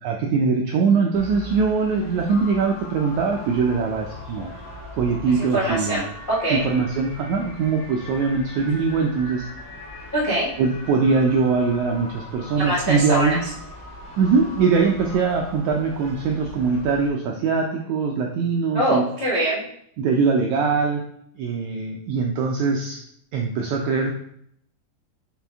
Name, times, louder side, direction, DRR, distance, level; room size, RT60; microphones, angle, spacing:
voice 1, 0.0-4.5 5.0-6.0 6.5-9.4 10.6-13.4 14.2-19.0 20.0-21.0 21.4-23.0 23.3-24.1, right 5 dB, 85° right, 1 dB, 1.7 m, -22 dB
sound 1, 1.1-17.1, left 1 dB, 10° left, 1.8 m, -42 dB
sound 2, 2.3-15.7, left 2 dB, 75° left, 3.3 m, -43 dB
voice 2, 5.3-6.6 10.1-10.5 12.6-13.5 18.7-19.6, right 1 dB, 90° left, -8 dB, 0.4 m, -23 dB
6.0 x 5.2 x 3.5 m, 0.69 s
omnidirectional pair, 4.1 m